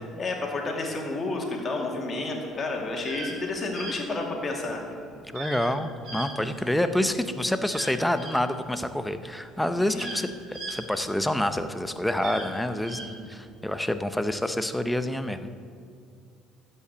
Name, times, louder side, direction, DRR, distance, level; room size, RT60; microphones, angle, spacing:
voice 1, 0.2-4.8 5.1-5.2 9.9-10.0 12.9-13.1, left 2 dB, 35° left, 0 dB, 2.4 m, -31 dB
sound 1, 2.9-3.4 3.7-3.9 5.3-5.7 6.0-6.9 7.6-8.3 9.2-9.3 9.7-11.5 12.1-13.1, right 2 dB, 70° right, 3.4 m, -38 dB
voice 2, 5.3-13.0 13.3-15.5, left 1 dB, 5° left, 10 dB, 0.7 m, -27 dB
13.0 x 5.6 x 8.4 m, 2.3 s
cardioid pair, 100°, 0 cm